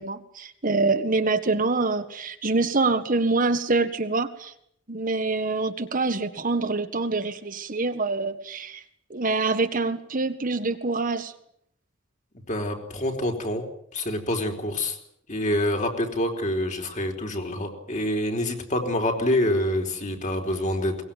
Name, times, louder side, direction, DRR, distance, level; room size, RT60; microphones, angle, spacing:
voice 1, 0.0-4.5 4.9-8.8 9.1-11.3, right 3 dB, 45° right, 9 dB, 1.6 m, -25 dB
voice 2, 12.5-13.6 13.9-15.0 15.3-21.0, left 1 dB, 40° left, 4 dB, 4.4 m, -26 dB
22.5 x 20.0 x 9.2 m, 0.70 s
head